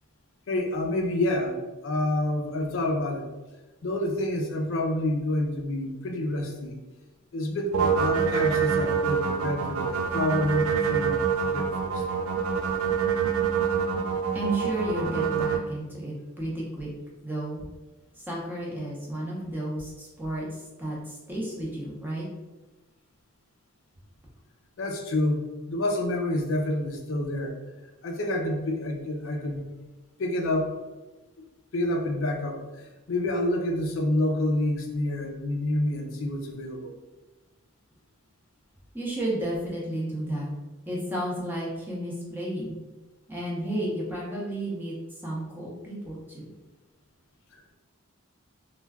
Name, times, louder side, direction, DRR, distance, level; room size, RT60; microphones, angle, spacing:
voice 1, 0.5-3.3 3.8-6.8 7.3-12.0 24.8-27.6 28.0-29.6 30.2-30.7 31.7-36.9 47.5-47.8, left 1 dB, 60° left, 2 dB, 0.4 m, -28 dB
sound 1, 7.7-15.6, right 6 dB, 75° right, 0.3 m, -26 dB
voice 2, 14.3-16.9 17.2-17.6 18.2-22.3 38.9-40.5 40.9-42.7 43.3-46.5, right 1 dB, 10° right, -5 dB, 0.6 m, -32 dB
2.2 x 2.2 x 3.3 m, 1.1 s
head